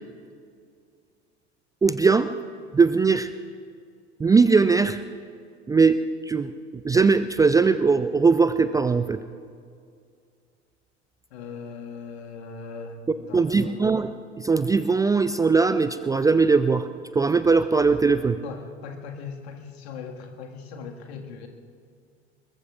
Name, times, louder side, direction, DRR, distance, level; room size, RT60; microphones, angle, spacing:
voice 1, 1.8-2.3 2.7-3.3 4.2-5.0 5.7-6.0 6.3-6.5 6.8-9.2 13.3-14.1 14.4-16.9 17.1-18.4, right 4 dB, 10° right, 11 dB, 0.4 m, -20 dB
voice 2, 11.3-13.9 18.4-21.5, left 5 dB, 65° left, 2 dB, 1.8 m, -39 dB
26.0 x 22.0 x 2.4 m, 2.3 s
figure-of-eight pair, 70°, 34 cm